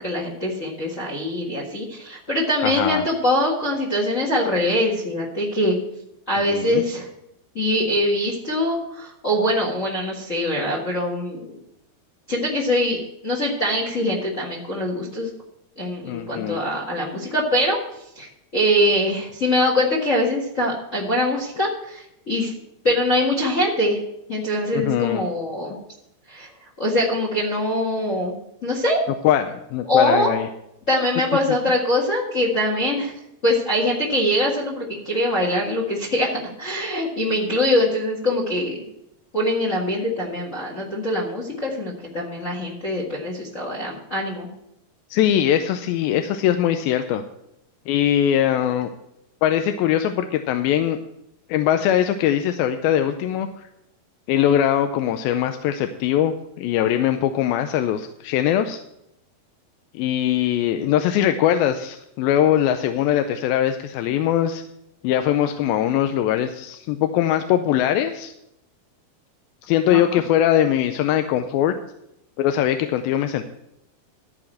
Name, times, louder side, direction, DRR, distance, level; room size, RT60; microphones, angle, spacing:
voice 1, 0.0-5.8 6.3-7.1 7.5-11.6 12.3-13.0 13.2-15.3 15.8-17.8 18.1-22.5 22.8-24.0 24.3-25.8 26.3-26.5 26.8-28.3 28.6-29.0 29.9-30.3 30.9-33.1 33.4-36.3 36.6-38.8 39.3-44.5 69.9-70.2, left 1 dB, 45° left, -2 dB, 1.0 m, -23 dB
voice 2, 2.6-3.0 6.4-6.8 16.1-16.6 24.7-25.2 29.1-30.5 31.5-31.6 45.1-47.2 47.9-48.9 49.4-51.0 51.5-53.7 54.3-58.8 59.9-64.6 65.0-68.3 69.6-71.8 72.4-73.4, left 10 dB, 80° left, 7 dB, 2.3 m, -21 dB
13.5 x 4.9 x 7.5 m, 0.81 s
omnidirectional pair, 4.4 m